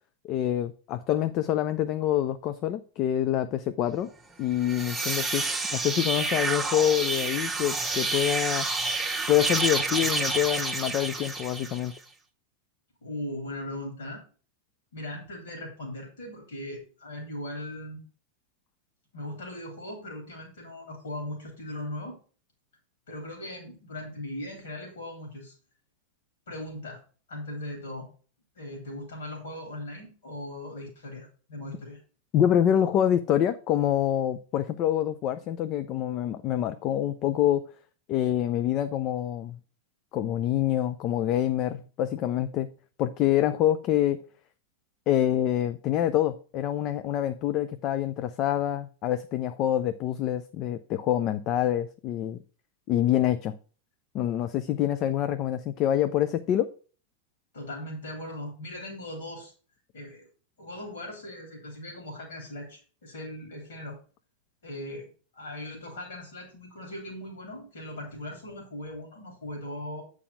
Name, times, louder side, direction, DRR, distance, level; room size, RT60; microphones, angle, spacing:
voice 1, 0.2-4.1 4.4-8.7 9.3-11.9 32.3-37.6 38.1-39.6 40.1-42.7 43.0-44.2 45.1-52.4 52.9-53.6 54.1-56.7, left 11 dB, 35° left, 11 dB, 0.5 m, -26 dB
sound 1, 4.5-12.0, right 3 dB, 5° right, 1.1 m, -29 dB
voice 2, 13.0-14.2 14.9-18.0 19.1-22.2 23.1-25.5 26.5-27.0 27.3-28.1 28.5-32.0 57.5-59.5 59.9-60.3 60.6-64.0 64.6-70.0, left 1 dB, 65° left, 1 dB, 3.0 m, -39 dB
8.5 x 4.8 x 5.5 m, 0.38 s
figure-of-eight pair, 90°, 0 cm